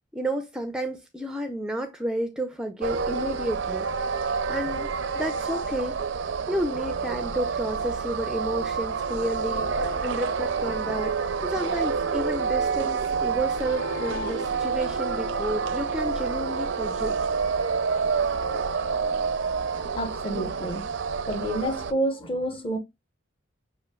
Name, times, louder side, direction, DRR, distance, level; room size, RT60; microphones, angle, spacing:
voice 1, 0.1-3.9 4.5-4.9 5.1-6.0 6.5-17.2, right 1 dB, 5° right, 0.4 m, -31 dB
sound 1, 2.8-21.9, right 5 dB, 70° right, 0.4 m, -28 dB
sound 2, 8.8-20.1, left 4 dB, 60° left, 0.7 m, -41 dB
voice 2, 20.0-20.9 21.3-22.8, right 1 dB, 30° left, 0.7 m, -28 dB
6.2 x 2.7 x 2.2 m
head